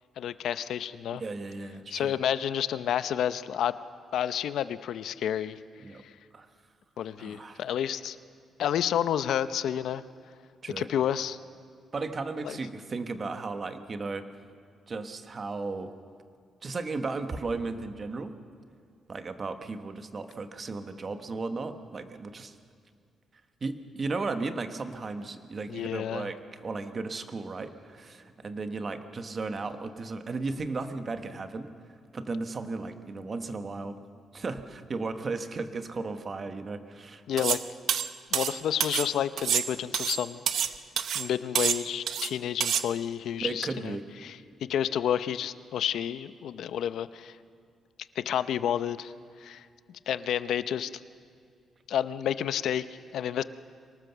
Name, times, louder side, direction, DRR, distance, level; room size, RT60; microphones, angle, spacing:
voice 1, 0.2-1.2 1.9-3.7 4.1-5.6 6.0-6.1 7.0-8.2 8.6-10.0 10.8-11.4 12.4-12.6 25.7-26.3 37.3-37.6 38.3-40.4 41.1-44.0 44.2-47.4 48.2-49.1 49.4-50.9 51.9-53.4, left 9 dB, 75° left, 14 dB, 0.6 m, -30 dB
voice 2, 1.1-2.1 5.8-6.0 6.3-6.5 7.2-7.6 10.6-10.9 11.9-14.2 14.9-15.9 16.6-18.4 19.1-22.6 23.6-31.7 32.1-34.0 34.3-37.2 43.4-44.0, right 3 dB, 35° right, 9 dB, 1.2 m, -35 dB
sound 1, 37.4-37.6 37.9-39.1 39.4-40.7 41.0-41.3 41.6-42.3 42.6-42.9, right 9 dB, 65° right, 0.7 m, -28 dB
24.0 x 19.0 x 6.9 m, 2.2 s
cardioid pair, 145°, 0 cm